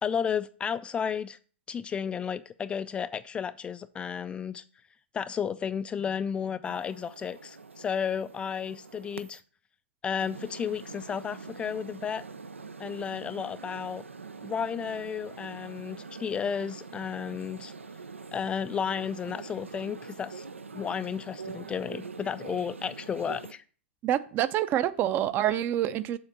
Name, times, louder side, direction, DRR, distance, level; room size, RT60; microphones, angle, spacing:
voice 1, 0.0-1.4 1.7-4.6 5.1-9.4 10.0-12.2 12.8-14.0 14.4-17.7 18.3-20.5 20.7-23.6, left 7 dB, 15° left, 0.3 m, -33 dB
sound 1, 6.6-9.4 10.2-23.5, right 4 dB, 85° right, 0.7 m, -44 dB
voice 2, 24.0-26.2, right 11 dB, 30° right, 0.6 m, -27 dB
7.0 x 4.2 x 6.7 m
figure-of-eight pair, 110°, 7 cm